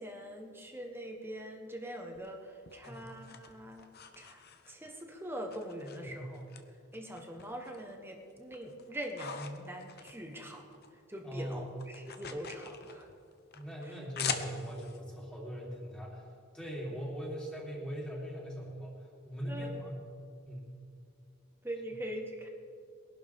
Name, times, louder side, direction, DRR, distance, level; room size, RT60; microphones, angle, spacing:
voice 1, 0.0-3.9 4.2-6.4 6.9-13.1 13.8-14.0 19.5-19.8 21.6-22.5, equal, 10° right, 2 dB, 1.2 m, -43 dB
sound 1, 2.1-5.0 5.5-6.6 6.9-7.9 8.3-10.9 11.2-15.0, left 7 dB, 50° left, 0.9 m, -43 dB
voice 2, 6.0-6.3 11.2-11.6 13.5-16.2 16.5-20.0 20.4-20.7, equal, 5° left, -5 dB, 3.2 m, -40 dB
21.5 x 11.5 x 3.6 m, 2.3 s
head